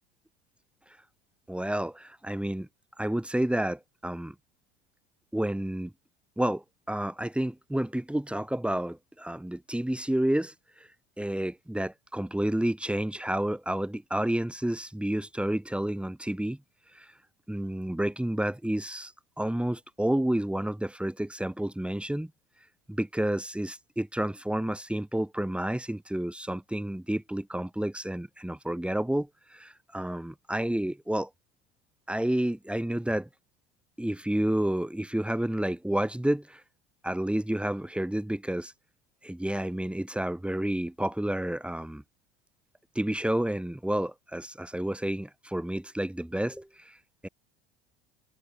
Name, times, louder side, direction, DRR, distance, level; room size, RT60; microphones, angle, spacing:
voice 1, 1.5-2.7 3.0-4.3 5.3-5.9 6.4-10.5 11.2-16.6 17.0-17.1 17.5-19.1 19.4-22.3 22.9-31.3 32.1-33.3 34.0-36.6 37.0-38.7 39.2-42.0 42.9-46.9 47.2-47.3, right 1 dB, 5° right, 6.8 m, -30 dB
supercardioid pair, 90°, 29 cm